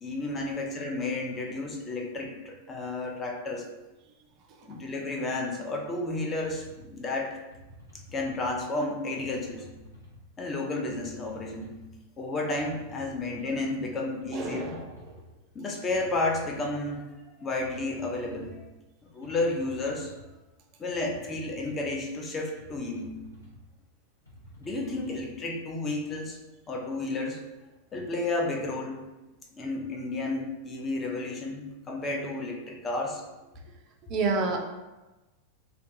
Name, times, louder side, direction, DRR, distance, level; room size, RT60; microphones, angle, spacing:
voice 1, 0.0-3.7 4.6-7.4 8.1-9.7 10.4-11.7 12.2-14.8 15.5-18.7 19.1-20.1 20.8-23.1 24.6-26.4 26.7-27.4 27.9-29.0 29.5-33.2, left 2 dB, 25° left, 2 dB, 0.4 m, -32 dB
sound 1, 6.5-6.9 7.5-8.5 9.2-10.2 10.9-11.9 12.5-13.6 14.2-15.2 15.9-16.9 17.6-18.6 19.2-20.3 20.9-21.9 22.6-23.6 24.2-25.3, left 1 dB, 80° left, 0.8 m, -50 dB
voice 2, 14.3-15.1 34.1-34.6, right 3 dB, 35° right, 2 dB, 0.4 m, -29 dB
2.4 x 2.2 x 2.6 m, 1.1 s
figure-of-eight pair, 90°, 0 cm